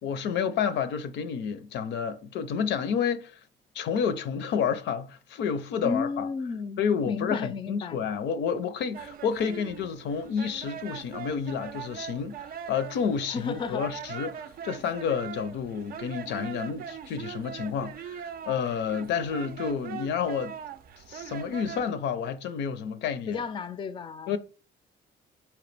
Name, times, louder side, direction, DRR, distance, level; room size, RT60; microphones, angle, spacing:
voice 1, 0.0-3.4 3.7-6.3 6.8-20.6 21.1-23.4 24.3-24.4, left 7 dB, 85° left, 0.5 m, -30 dB
voice 2, 5.8-8.0 13.3-13.8 23.3-24.4, left 4 dB, 25° left, 0.4 m, -33 dB
sound 1, 8.9-21.9, right 8 dB, 55° right, 0.4 m, -41 dB
4.5 x 2.9 x 3.3 m
cardioid pair, 115°, 18 cm